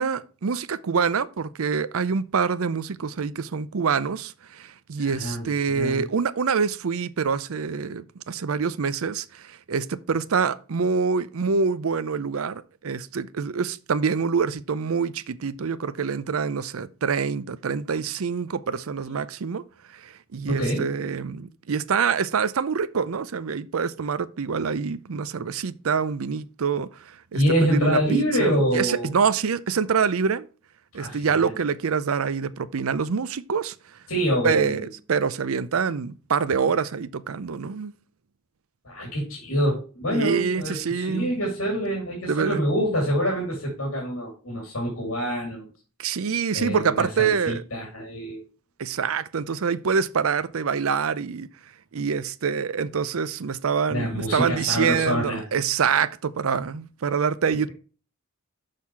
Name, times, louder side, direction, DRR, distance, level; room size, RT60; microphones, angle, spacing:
voice 1, 0.0-19.6 20.0-30.5 30.9-33.7 34.4-34.8 35.1-37.9 40.1-41.3 42.3-42.6 46.0-47.6 48.8-51.5 51.9-57.7, right 6 dB, 80° right, 0.6 m, -26 dB
voice 2, 5.0-6.1 19.1-19.2 20.5-20.9 27.3-29.1 30.9-31.5 34.1-34.9 38.8-45.7 46.5-48.4 53.9-55.4, equal, 85° left, 2.6 m, -26 dB
6.5 x 5.7 x 4.5 m
head